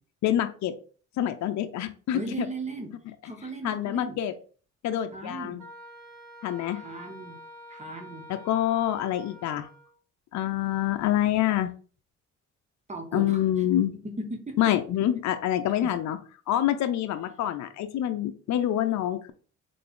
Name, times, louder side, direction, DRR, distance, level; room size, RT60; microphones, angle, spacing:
voice 1, 0.2-0.7 1.2-2.2 3.6-4.3 4.8-5.6 6.4-6.8 8.5-9.7 10.3-11.7 13.1-13.9 14.6-16.2 16.5-19.3, left 12 dB, 70° left, 8 dB, 0.5 m, -26 dB
voice 2, 2.1-2.9 3.2-4.2 5.1-5.6 6.7-7.4 7.7-8.3 12.9-13.4 13.9-14.6 15.8-16.0, right 2 dB, 25° right, 4 dB, 1.2 m, -37 dB
Wind instrument woodwind instrument, 5.6-10.0, left 1 dB, 65° right, 1.8 m, -47 dB
3.9 x 3.3 x 3.7 m, 0.40 s
cardioid pair, 90°, 30 cm